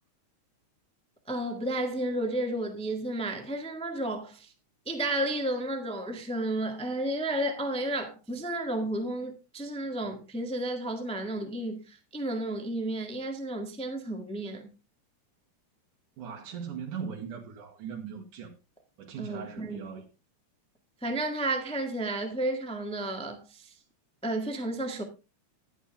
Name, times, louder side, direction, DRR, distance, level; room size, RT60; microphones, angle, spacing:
voice 1, 1.3-4.5 4.8-14.7 19.2-19.8 21.0-23.7 24.2-25.0, right 1 dB, 5° left, 0.5 m, -32 dB
voice 2, 16.2-18.5 19.0-20.0, right 7 dB, 80° right, 3.5 m, -39 dB
11.0 x 11.0 x 3.5 m
omnidirectional pair, 3.6 m